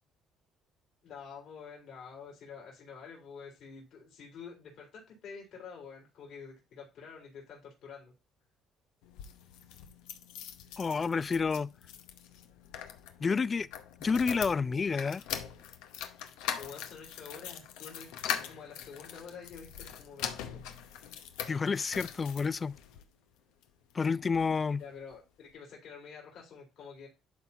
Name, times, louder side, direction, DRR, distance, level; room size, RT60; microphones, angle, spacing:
voice 1, 1.0-8.1 16.6-20.6 24.8-27.1, left 6 dB, 70° left, 3.8 m, -48 dB
sound 1, 9.0-23.0 23.6-24.5 24.8-24.9 25.1-25.2, left 9 dB, 90° left, 0.8 m, -42 dB
voice 2, 10.8-11.7 13.2-13.7 14.0-15.2 21.5-22.7 23.9-24.8, left 5 dB, 35° left, 0.3 m, -29 dB
11.5 x 4.2 x 2.8 m
supercardioid pair, 80°, 0 cm